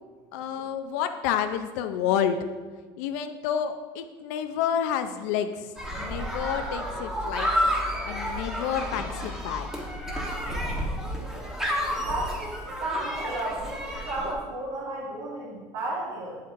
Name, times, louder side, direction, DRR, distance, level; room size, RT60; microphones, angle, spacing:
voice 1, 0.3-2.4 3.0-5.7 6.0-7.5 8.0-9.9, left 9 dB, 85° left, 8 dB, 0.5 m, -29 dB
sound 1, 5.8-14.3, equal, 5° right, 1.1 m, -30 dB
voice 2, 12.1-12.5 12.8-16.4, right 2 dB, 60° right, -8 dB, 2.1 m, -33 dB
8.5 x 8.3 x 2.5 m, 1.4 s
cardioid pair, 155°, 9 cm